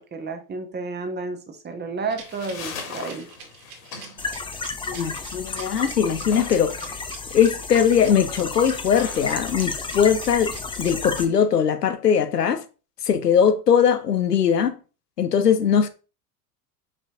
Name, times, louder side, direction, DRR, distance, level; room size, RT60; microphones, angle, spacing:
voice 1, 0.1-3.3, right 4 dB, 20° right, 1.3 m, -31 dB
sound 1, 2.0-11.0, left 5 dB, 50° left, 2.1 m, -42 dB
Rattle, 2.1-11.6, right 7 dB, 50° right, 2.0 m, -44 dB
sound 2, 4.2-11.3, left 4 dB, 10° left, 0.7 m, -32 dB
voice 2, 4.9-6.9 7.3-12.6 13.0-14.8 15.2-15.9, left 7 dB, 85° left, 0.8 m, -20 dB
5.6 x 5.2 x 3.6 m
figure-of-eight pair, 75°, 46 cm